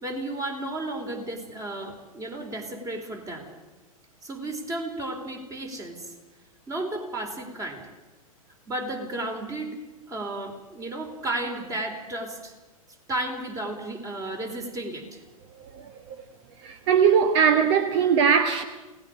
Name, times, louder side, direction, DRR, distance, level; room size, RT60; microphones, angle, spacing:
voice 1, 0.0-3.5 4.2-6.1 6.7-7.8 8.7-9.8 10.1-12.5 13.1-15.2, right 2 dB, 20° right, 4.1 m, -33 dB
voice 2, 16.6-18.6, right 7 dB, 50° right, 1.3 m, -20 dB
28.0 x 18.5 x 5.1 m
hypercardioid pair, 110°, 18 cm